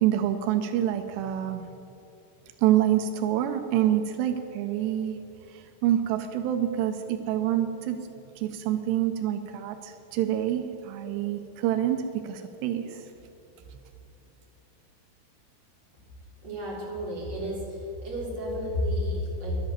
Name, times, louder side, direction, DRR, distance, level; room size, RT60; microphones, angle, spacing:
voice 1, 0.0-1.6 2.6-5.2 5.5-8.0 8.4-13.1, right 11 dB, 85° right, 7 dB, 2.8 m, -27 dB
voice 2, 16.4-19.6, left 1 dB, 30° right, -6 dB, 4.1 m, -31 dB
11.5 x 10.5 x 7.5 m, 2.8 s
omnidirectional pair, 4.9 m